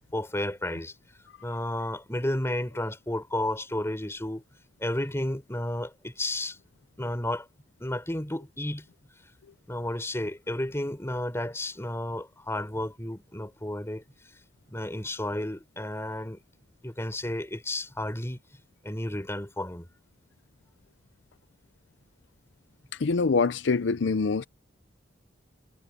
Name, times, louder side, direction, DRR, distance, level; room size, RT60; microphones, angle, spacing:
voice 1, 0.1-0.9 1.4-4.4 4.8-6.6 7.0-7.5 7.8-8.9 9.7-14.0 14.7-16.4 16.8-18.4 18.8-19.9, left 1 dB, 15° left, 3.7 m, -32 dB
voice 2, 22.9-24.4, left 4 dB, 75° left, 0.5 m, -25 dB
head